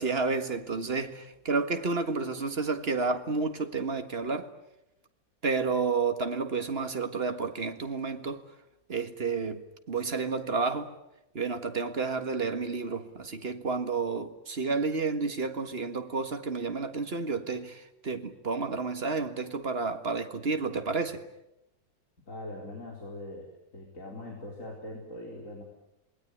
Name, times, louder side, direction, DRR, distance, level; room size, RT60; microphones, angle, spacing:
voice 1, 0.0-4.5 5.4-8.4 8.9-9.6 9.9-10.9 11.3-21.2, right 4 dB, 35° right, 1.8 m, -30 dB
voice 2, 22.3-23.5 23.7-25.6, left 1 dB, 40° left, 4.6 m, -41 dB
27.5 x 20.5 x 9.9 m
omnidirectional pair, 2.0 m